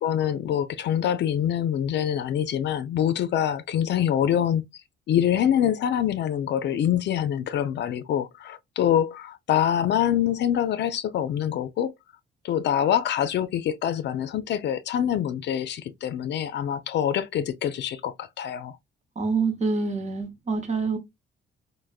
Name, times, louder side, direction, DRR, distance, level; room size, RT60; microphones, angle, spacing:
voice 1, 0.0-4.6 5.1-11.9 12.4-18.8, left 10 dB, 60° left, 0.4 m, -25 dB
voice 2, 19.2-21.0, right 4 dB, 35° right, 0.9 m, -26 dB
3.3 x 2.1 x 2.3 m
cardioid pair, 90°, 20 cm